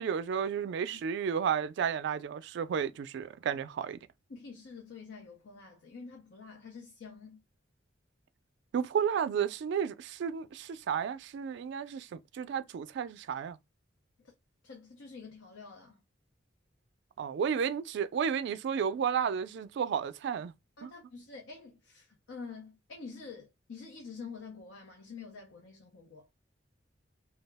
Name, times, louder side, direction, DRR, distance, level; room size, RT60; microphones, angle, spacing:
voice 1, 0.0-4.0 8.7-13.6 17.2-20.5 20.8-20.9, right 7 dB, 65° right, 0.3 m, -32 dB
voice 2, 4.3-7.4 14.2-14.3 14.6-16.0 20.8-26.3, left 4 dB, 85° left, 0.6 m, -47 dB
2.3 x 2.0 x 3.4 m
head